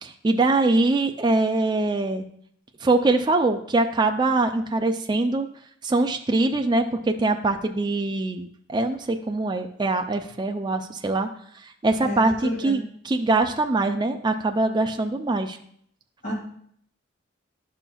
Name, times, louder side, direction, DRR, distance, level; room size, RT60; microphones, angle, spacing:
voice 1, 0.0-2.2 2.8-5.5 5.8-11.3 11.8-15.6, right 2 dB, 20° right, 4 dB, 0.4 m, -23 dB
voice 2, 12.0-12.8 16.2-16.3, equal, 45° left, -4 dB, 2.0 m, -31 dB
11.0 x 5.6 x 2.3 m, 0.64 s
head